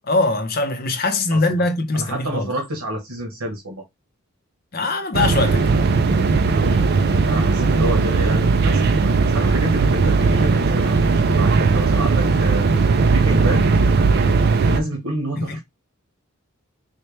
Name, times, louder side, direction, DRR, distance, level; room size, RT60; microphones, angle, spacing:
voice 1, 0.1-2.5 4.7-5.6 15.4-15.6, left 2 dB, 45° left, 0.6 m, -22 dB
voice 2, 1.9-3.8 6.6-6.9 7.2-8.9 9.3-12.7 13.0-13.7 14.6-15.6, right 1 dB, 85° right, 1.2 m, -28 dB
sound 1, 5.1-14.8, right 4 dB, 45° right, 0.4 m, -17 dB
4.2 x 2.2 x 3.2 m
head